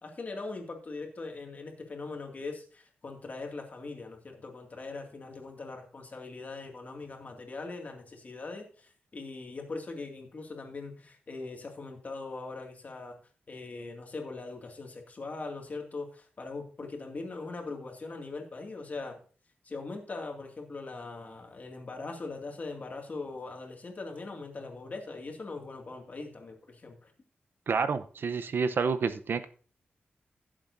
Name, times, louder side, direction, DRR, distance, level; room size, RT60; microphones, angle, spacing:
voice 1, 0.0-13.2 13.5-19.2 19.6-27.1, left 3 dB, 40° left, 2 dB, 2.2 m, -41 dB
voice 2, 27.7-29.5, right 5 dB, 65° right, 11 dB, 0.7 m, -29 dB
16.0 x 7.4 x 2.7 m, 0.41 s
wide cardioid pair, 115°, 4 cm